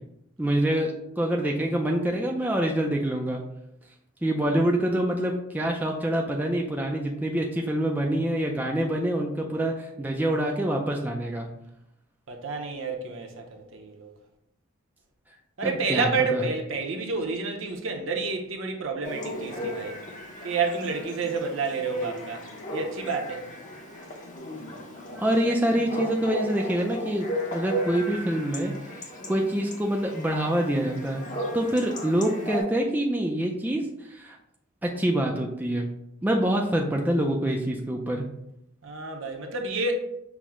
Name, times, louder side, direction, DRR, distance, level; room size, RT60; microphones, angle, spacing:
voice 1, 0.4-3.4 4.2-11.5 15.6-16.4 25.2-31.2 31.5-34.4 34.8-35.9 36.2-38.3, right 1 dB, 10° right, 0.3 m, -26 dB
voice 2, 12.3-14.1 15.6-20.0 20.4-22.5 22.7-23.5 38.8-39.9, right 4 dB, 60° right, 0.7 m, -29 dB
Chatter / Bark / Livestock farm animals working animals, 19.0-32.6, equal, 35° left, 0.7 m, -35 dB
5.9 x 2.1 x 3.6 m
head